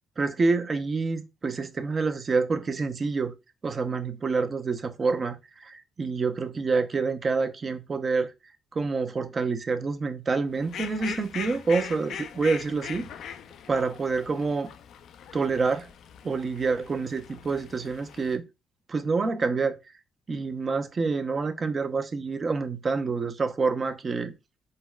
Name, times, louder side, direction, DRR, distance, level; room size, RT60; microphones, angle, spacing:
voice 1, 0.2-3.3 3.6-8.3 8.7-13.1 13.7-14.7 15.3-15.9 16.2-18.4 18.9-19.7 20.3-24.3, right 4 dB, 35° right, 0.4 m, -27 dB
Fowl, 10.6-18.4, left 7 dB, 75° left, 0.3 m, -41 dB
4.0 x 2.0 x 2.3 m
cardioid pair, 90°, 0 cm